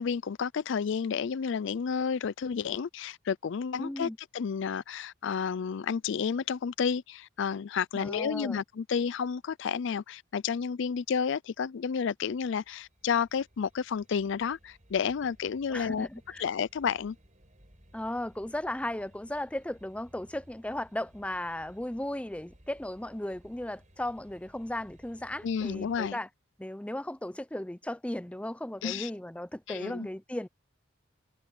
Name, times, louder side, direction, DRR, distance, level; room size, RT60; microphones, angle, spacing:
voice 1, 0.0-16.1 16.4-17.2 25.4-26.2 28.8-29.1 29.7-30.1, left 6 dB, 65° left, 0.4 m, -31 dB
voice 2, 3.8-4.2 7.9-8.6 15.7-16.4 17.9-26.3 26.6-30.5, left 1 dB, 5° left, 0.6 m, -36 dB
sound 1, 12.3-26.1, equal, 40° right, 6.1 m, -59 dB
head